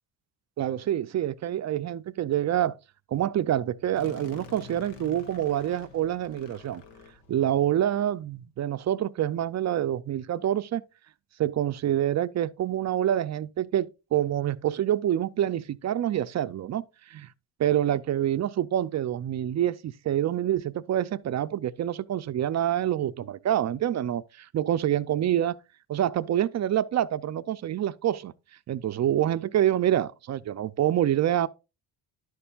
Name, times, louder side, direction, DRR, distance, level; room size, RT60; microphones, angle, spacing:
voice 1, 0.6-2.8 3.1-6.8 7.3-10.8 11.4-17.3 17.6-25.5 25.9-28.3 28.7-31.5, right 11 dB, 40° right, 0.4 m, -27 dB
sound 1, 3.9-7.9, left 6 dB, 85° left, 1.5 m, -47 dB
11.0 x 6.9 x 2.4 m
cardioid pair, 90°, 42 cm